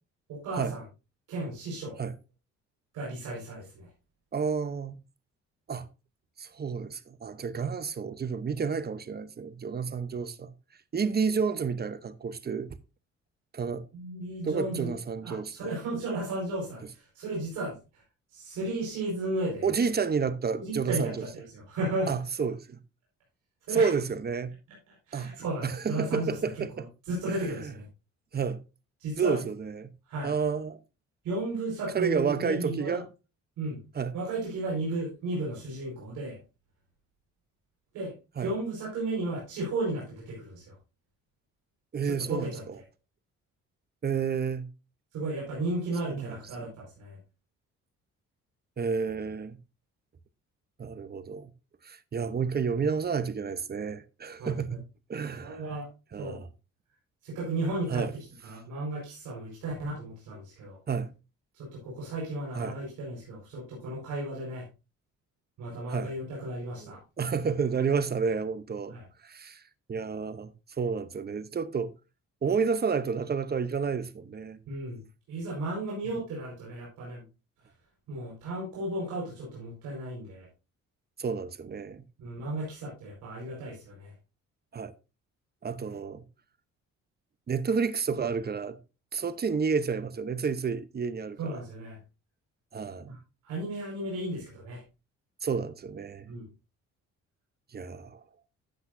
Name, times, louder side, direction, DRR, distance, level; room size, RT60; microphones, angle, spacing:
voice 1, 0.3-0.8 1.3-2.0 2.9-3.9 13.9-14.9 15.2-18.0 18.3-19.7 20.6-22.1 23.7-23.9 25.1-26.4 27.1-27.8 29.0-29.4 30.1-30.3 31.2-33.0 33.6-33.8 34.1-36.4 37.9-38.1 38.4-40.7 42.0-42.8 45.1-47.2 54.4-54.8 55.4-55.9 56.2-56.4 57.2-58.0 58.4-60.8 61.5-64.6 65.6-67.0 68.9-69.0 74.7-75.0 75.3-77.2 78.1-80.5 82.2-84.1 91.4-92.0 93.0-93.2 93.4-94.8 96.3-96.4, right 2 dB, 90° right, 4.8 m, -34 dB
voice 2, 4.3-4.9 5.7-5.9 6.4-10.5 10.9-12.8 13.5-13.8 14.4-15.7 19.6-21.2 22.1-22.8 23.7-24.5 25.1-25.4 25.6-26.9 27.3-27.7 28.3-28.6 29.2-29.9 30.2-30.8 31.9-33.1 33.9-34.1 38.4-38.5 41.9-42.5 44.0-44.7 46.1-46.7 48.8-49.6 50.8-51.5 51.8-54.8 55.1-55.6 56.1-56.5 57.9-58.1 60.9-61.1 62.5-62.8 65.9-66.1 66.8-69.0 69.2-69.6 69.9-71.9 72.4-74.6 81.2-82.0 84.7-84.9 85.6-86.2 87.5-88.8 89.1-91.6 92.7-93.2 95.4-96.3 97.7-98.2, right 5 dB, 30° right, 0.9 m, -30 dB
12.5 x 8.0 x 2.6 m
cardioid pair, 90°, 30 cm